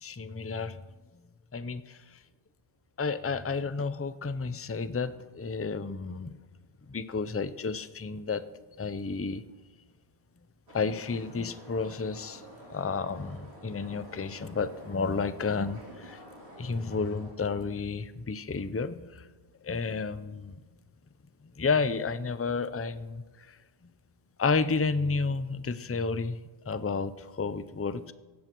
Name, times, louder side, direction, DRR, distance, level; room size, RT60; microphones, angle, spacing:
voice 1, 0.0-0.8 1.5-2.2 3.0-6.4 6.9-8.4 8.8-9.4 10.7-12.4 12.7-16.2 16.6-19.3 19.6-20.6 21.6-23.6 23.8-23.9 24.4-26.4 26.7-28.1, left 4 dB, 20° left, 13 dB, 0.4 m, -31 dB
sound 1, 10.7-17.3, equal, 85° right, 4.8 m, -49 dB
17.0 x 16.0 x 4.6 m, 1.3 s
omnidirectional pair, 1.1 m